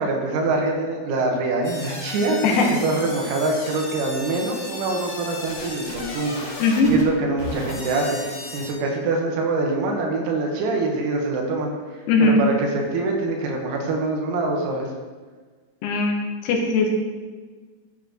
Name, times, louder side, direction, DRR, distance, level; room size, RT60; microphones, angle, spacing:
voice 1, 0.0-6.4 6.9-14.9, right 2 dB, 85° right, 0 dB, 4.3 m, -24 dB
sound 1, 1.6-8.7, left 2 dB, 40° left, 2.5 m, -35 dB
voice 2, 2.4-2.8 6.6-6.9 12.1-12.4 15.8-16.9, left 3 dB, 75° left, 1 dB, 3.5 m, -20 dB
14.0 x 10.0 x 3.2 m, 1.4 s
omnidirectional pair, 6.0 m